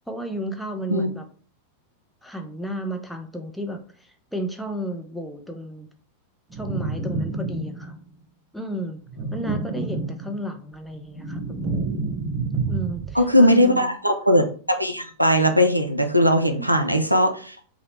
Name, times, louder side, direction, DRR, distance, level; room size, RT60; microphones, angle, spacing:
voice 1, 0.1-1.2 2.2-5.9 6.5-8.0 8.5-9.0 9.3-11.9 12.7-13.9 16.6-16.7, right 1 dB, ahead, 4 dB, 0.4 m, -33 dB
sound 1, 6.5-8.1 9.0-10.5 10.9-13.3, right 3 dB, 20° right, 0.8 m, -29 dB
voice 2, 13.2-17.6, equal, 90° right, 6 dB, 0.3 m, -19 dB
2.8 x 2.0 x 3.1 m, 0.42 s
figure-of-eight pair, 90°, 0 cm